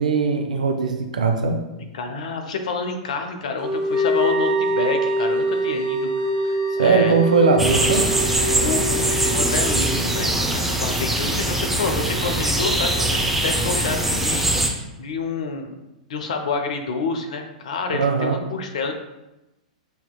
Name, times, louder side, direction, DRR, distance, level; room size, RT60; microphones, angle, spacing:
voice 1, 0.0-1.6 6.8-8.1 17.9-18.4, right 4 dB, 80° right, 5 dB, 0.5 m, -20 dB
voice 2, 1.9-7.2 8.5-15.7 16.1-18.9, left 4 dB, 70° left, 5 dB, 0.7 m, -28 dB
sound 1, 3.6-10.4, right 1 dB, 40° left, 1.2 m, -24 dB
Wind instrument woodwind instrument, 3.9-14.7, right 3 dB, 40° right, 0.7 m, -37 dB
sound 2, 7.6-14.7, right 1 dB, 5° right, 0.6 m, -22 dB
6.6 x 2.8 x 2.3 m, 0.98 s
hypercardioid pair, 105°, 4 cm